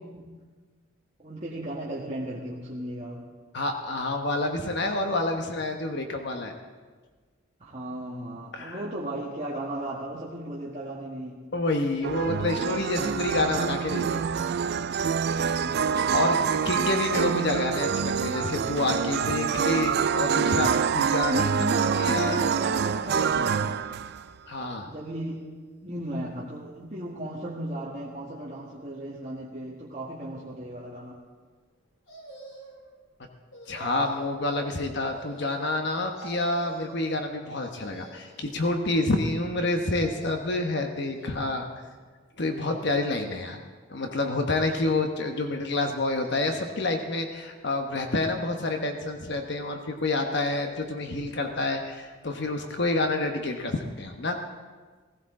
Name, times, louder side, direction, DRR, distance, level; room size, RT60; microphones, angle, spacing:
voice 1, 1.2-3.2 7.6-11.4 15.5-16.2 21.3-23.8 24.8-25.4 25.8-31.2, right 1 dB, 30° right, -6 dB, 1.6 m, -35 dB
voice 2, 3.5-6.5 8.5-8.8 11.5-14.2 16.1-21.3 22.0-22.5 24.5-24.9 33.7-41.7 42.4-43.6 43.9-54.4, left 2 dB, 55° left, 4 dB, 1.1 m, -28 dB
sound 1, 12.0-24.3, right 6 dB, 50° right, 0.3 m, -26 dB
sound 2, 32.1-32.9 33.5-34.3 35.1-35.8 36.1-37.0 37.6-38.5 39.6-40.6 41.1-41.8 42.4-43.2 44.2-45.0 45.8-46.7 47.1-47.2, right 1 dB, 70° left, 3.5 m, -45 dB
16.5 x 15.5 x 3.8 m, 1.4 s
head